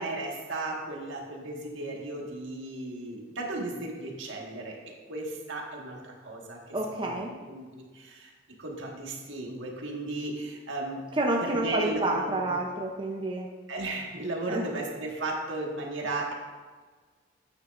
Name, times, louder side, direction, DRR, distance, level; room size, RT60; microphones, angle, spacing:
voice 1, 0.0-4.8 5.1-7.1 7.5-8.3 8.6-11.0 11.4-12.5 13.7-16.3, right 2 dB, 75° right, -1 dB, 1.6 m, -35 dB
voice 2, 6.7-7.3 11.2-13.5 14.5-14.6, right 2 dB, 25° right, 0 dB, 0.6 m, -29 dB
10.0 x 8.9 x 2.5 m, 1.4 s
head